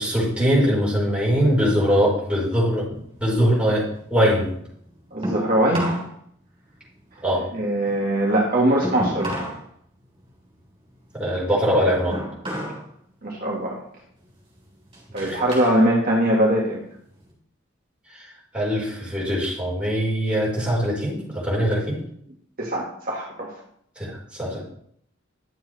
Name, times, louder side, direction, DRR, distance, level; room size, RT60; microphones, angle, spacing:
voice 1, 0.0-2.9 3.2-3.8 4.1-4.5 7.2-7.4 11.1-12.2 15.2-15.5 18.1-18.3 18.5-22.0 24.0-24.6, equal, 5° right, -6 dB, 4.1 m, -22 dB
sound 1, 3.0-6.1 6.4-9.6 10.0-12.9 13.2-13.6 14.1-15.8 16.2-17.3, right 1 dB, 25° right, 3.9 m, -33 dB
voice 2, 5.1-5.9 7.5-9.4 13.2-13.8 15.1-16.8 22.6-23.5, right 1 dB, 45° right, -3 dB, 1.5 m, -21 dB
11.0 x 7.2 x 3.2 m, 0.68 s
head